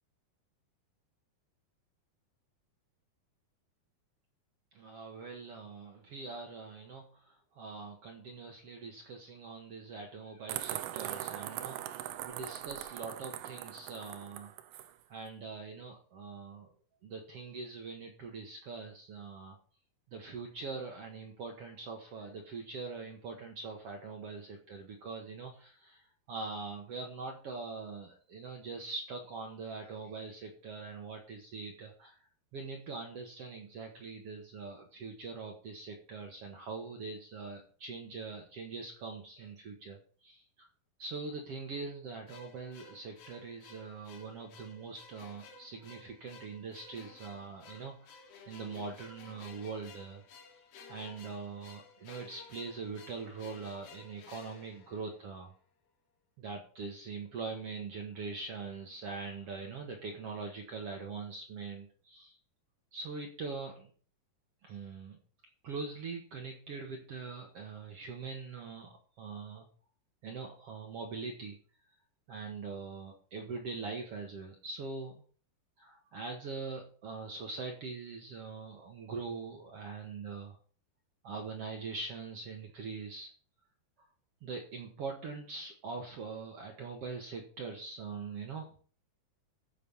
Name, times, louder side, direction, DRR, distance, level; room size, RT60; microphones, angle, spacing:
voice 1, 4.7-14.5 15.1-16.7 17.0-19.6 20.1-32.2 32.5-40.7 41.0-50.2 50.9-55.5 56.4-62.4 62.9-63.9 64.6-65.2 65.6-69.7 70.2-71.6 72.3-75.2 75.8-80.6 81.2-83.3 84.0-84.1 84.4-88.9, right 4 dB, 55° right, 1 dB, 1.7 m, -43 dB
sound 1, 10.5-14.9, right 13 dB, 75° right, 2.2 m, -41 dB
sound 2, 42.3-55.5, left 4 dB, 85° left, 3.6 m, -55 dB
14.5 x 5.1 x 5.5 m, 0.42 s
omnidirectional pair, 4.3 m